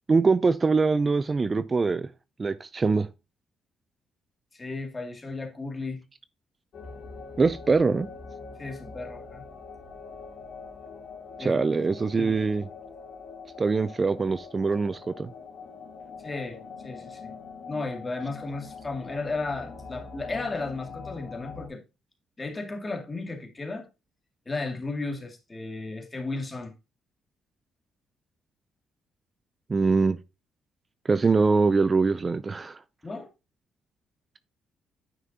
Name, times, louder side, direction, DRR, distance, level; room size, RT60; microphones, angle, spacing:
voice 1, 0.1-2.1 2.4-3.1 7.4-8.1 11.4-12.7 13.6-15.3 29.7-30.2 31.1-32.8, right 4 dB, 30° right, 0.5 m, -23 dB
voice 2, 4.5-6.0 8.6-9.4 11.4-11.9 12.2-12.4 16.2-17.3 17.7-21.8 22.4-23.9 24.5-26.7 33.0-33.3, left 3 dB, 25° left, 2.3 m, -34 dB
sound 1, 6.7-21.7, left 5 dB, 60° left, 2.8 m, -43 dB
9.4 x 5.9 x 2.8 m
cardioid pair, 90°, 0 cm